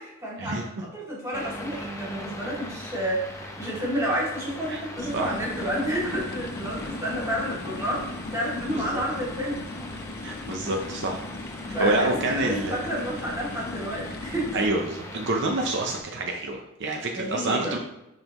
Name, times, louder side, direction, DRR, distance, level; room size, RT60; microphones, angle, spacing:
voice 1, 0.0-9.6 11.7-14.5 17.1-17.7, equal, 15° right, -6 dB, 2.5 m, -30 dB
sound 1, 1.3-16.0, left 1 dB, 15° left, 0.9 m, -40 dB
sound 2, 5.0-14.7, left 3 dB, 50° left, 0.5 m, -38 dB
voice 2, 8.7-9.0 10.2-11.2 11.8-12.8 14.5-17.8, right 2 dB, 60° right, 2 dB, 0.7 m, -27 dB
10.5 x 3.9 x 3.0 m, 0.88 s
head